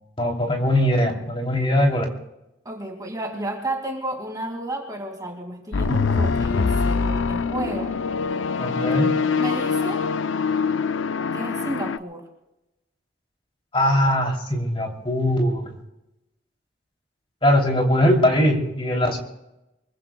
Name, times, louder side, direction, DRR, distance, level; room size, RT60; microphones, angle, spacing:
voice 1, 0.2-2.0 8.6-9.2 13.7-15.8 17.4-19.2, left 1 dB, 30° left, 1 dB, 3.1 m, -21 dB
voice 2, 2.6-7.9 8.8-9.0 9.4-10.1 11.3-12.3, right 1 dB, 20° right, 2 dB, 2.2 m, -32 dB
sound 1, 5.7-12.0, left 5 dB, 90° left, 0.5 m, -24 dB
24.5 x 23.0 x 2.3 m, 0.92 s
head